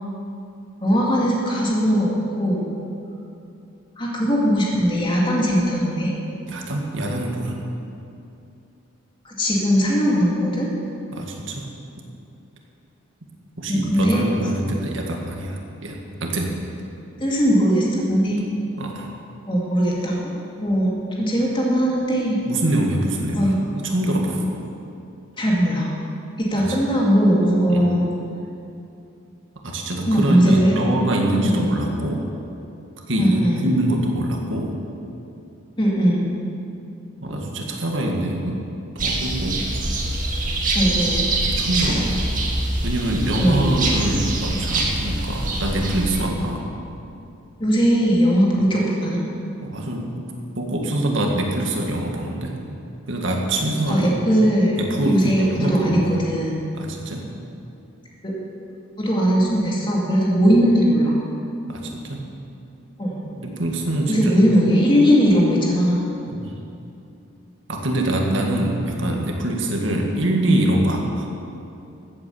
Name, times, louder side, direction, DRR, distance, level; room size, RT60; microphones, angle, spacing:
voice 1, 0.8-2.1 2.4-2.7 4.0-6.1 9.3-10.7 13.7-14.2 17.2-18.4 19.5-20.3 20.6-20.9 21.2-22.4 23.3-23.6 25.4-25.9 26.4-28.0 30.0-30.7 31.6-31.7 33.2-33.7 35.8-36.3 40.7-41.3 41.8-42.0 43.4-43.7 47.6-49.2 53.9-56.6 58.2-58.3 59.0-61.1 63.0-63.2 64.1-66.0, equal, 25° left, -4 dB, 2.5 m, -19 dB
voice 2, 6.5-7.5 11.1-11.7 13.6-16.5 18.8-19.1 22.5-23.5 23.8-24.4 26.5-26.8 27.7-27.9 29.6-32.2 33.1-34.8 37.2-38.6 39.0-39.6 41.4-42.1 42.8-46.7 49.6-50.2 50.6-52.6 53.1-54.1 54.8-56.1 56.7-57.3 61.7-62.2 63.4-64.3 66.3-66.5 67.7-71.3, right 1 dB, 70° right, 1 dB, 1.9 m, -24 dB
sound 1, 39.0-46.2, right 2 dB, 40° right, 1.9 m, -24 dB
15.0 x 8.5 x 7.2 m, 2.7 s
head